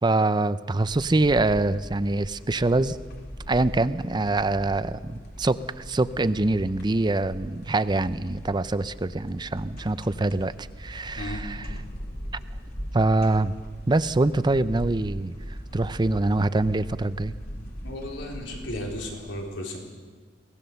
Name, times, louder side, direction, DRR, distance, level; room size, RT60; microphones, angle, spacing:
voice 1, 0.0-3.0 3.5-5.0 5.4-10.5 10.8-11.6 12.9-13.5 13.9-15.3 15.7-17.3, right 2 dB, 25° right, 14 dB, 0.5 m, -24 dB
sound 1, 0.8-19.1, equal, 60° left, 3.7 m, -40 dB
voice 2, 11.2-11.6 17.8-19.8, left 1 dB, 85° left, 0 dB, 4.0 m, -35 dB
23.5 x 18.0 x 6.8 m, 1.4 s
head